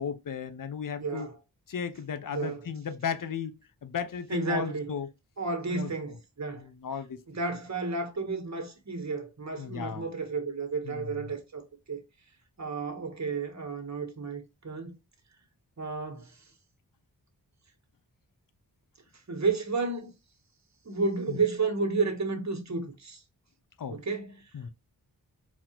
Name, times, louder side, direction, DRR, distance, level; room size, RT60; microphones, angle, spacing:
voice 1, 0.0-1.3 1.7-3.5 3.8-5.1 5.7-5.9 6.5-7.2 9.6-10.1 10.9-11.0 21.3-21.4 23.8-24.0 24.5-24.7, left 7 dB, 55° left, 0.7 m, -35 dB
voice 2, 1.0-1.4 2.3-2.7 4.3-5.0 5.4-6.6 7.3-11.6 11.9-12.0 12.6-14.9 15.8-16.3 19.3-20.1 20.8-23.2 23.9-24.4, right 4 dB, 45° right, 1.3 m, -32 dB
4.0 x 2.8 x 2.9 m
cardioid pair, 45°, 39 cm